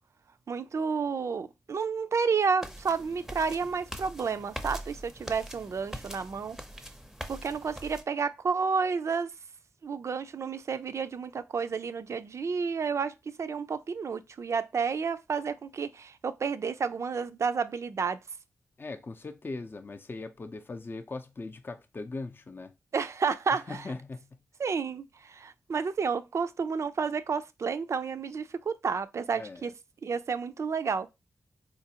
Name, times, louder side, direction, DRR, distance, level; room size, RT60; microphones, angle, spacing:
voice 1, 0.5-6.6 7.3-9.3 9.8-18.2 22.9-23.9 24.6-29.7 30.0-31.1, right 5 dB, 60° right, 0.4 m, -31 dB
sound 1, 2.6-8.0, equal, 5° right, 0.6 m, -42 dB
voice 2, 18.8-22.7 23.7-24.3 29.3-29.7, left 3 dB, 40° left, 0.5 m, -39 dB
3.9 x 2.5 x 2.8 m
cardioid pair, 50°, 6 cm